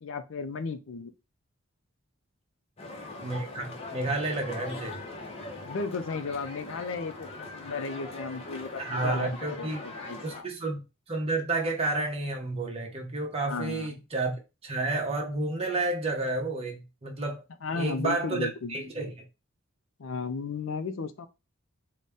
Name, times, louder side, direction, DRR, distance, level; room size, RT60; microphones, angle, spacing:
voice 1, 0.0-1.1 5.6-10.5 13.4-13.9 17.6-18.7 20.0-21.3, left 4 dB, 65° left, 0.5 m, -35 dB
sound 1, 2.8-10.4, left 2 dB, 30° left, 0.7 m, -41 dB
voice 2, 3.2-5.0 8.8-9.8 10.2-14.3 14.6-17.4 17.7-19.1, right 2 dB, 30° right, 0.8 m, -31 dB
4.0 x 2.2 x 3.5 m
head